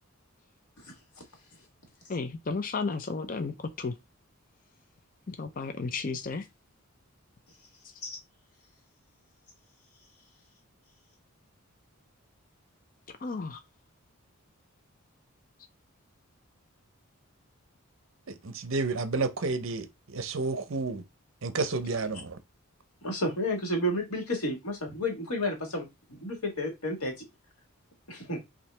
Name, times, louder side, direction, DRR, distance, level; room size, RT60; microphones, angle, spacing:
voice 1, 2.1-3.9 5.3-6.5 13.2-13.6, left 4 dB, 40° left, 0.5 m, -33 dB
voice 2, 18.3-21.0 21.4-22.4, right 3 dB, 65° right, 0.7 m, -31 dB
voice 3, 23.0-27.1 28.1-28.4, left 1 dB, 85° left, 1.6 m, -31 dB
5.7 x 2.7 x 3.3 m
head